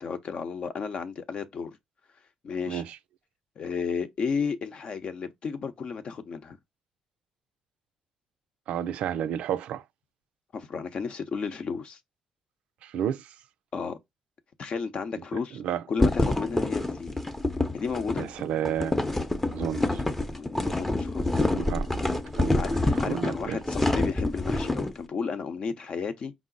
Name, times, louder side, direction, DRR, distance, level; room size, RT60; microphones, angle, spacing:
voice 1, 0.0-1.8 2.4-2.8 3.6-6.6 10.5-12.0 13.7-14.0 14.6-15.6 15.9-17.2 17.7-18.3 20.3-21.9 22.5-26.3, left 5 dB, 60° left, 0.7 m, -33 dB
voice 2, 8.7-9.8 12.8-13.3 15.6-15.8 18.2-19.1 19.5-20.0 21.5-22.6 22.9-23.6, right 9 dB, 80° right, 0.4 m, -31 dB
sound 1, 16.0-24.9, left 2 dB, 15° left, 0.7 m, -27 dB
4.9 x 2.0 x 3.8 m
supercardioid pair, 65°, 2 cm